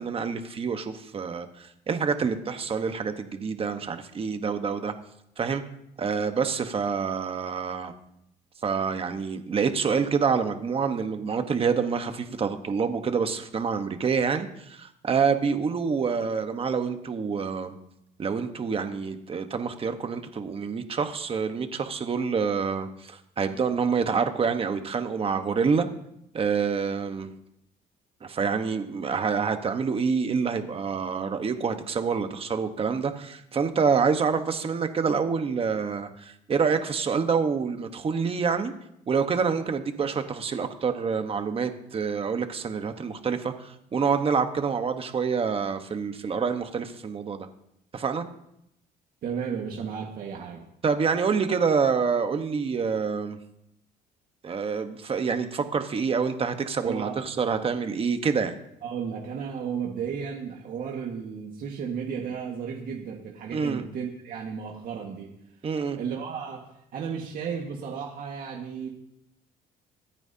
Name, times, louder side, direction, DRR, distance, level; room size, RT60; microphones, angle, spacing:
voice 1, 0.0-4.9 5.4-5.6 6.0-7.9 8.6-17.8 18.2-25.9 26.3-27.3 28.2-38.7 39.1-47.5 47.9-48.2 50.8-53.4 54.4-58.5 63.5-63.8 65.6-66.0, right 5 dB, 35° right, 7 dB, 1.2 m, -27 dB
voice 2, 49.2-50.6 56.8-57.2 58.8-65.3 66.0-68.9, right 7 dB, 60° right, -1 dB, 1.8 m, -34 dB
24.5 x 9.0 x 2.8 m, 0.78 s
cardioid pair, 110°, 17 cm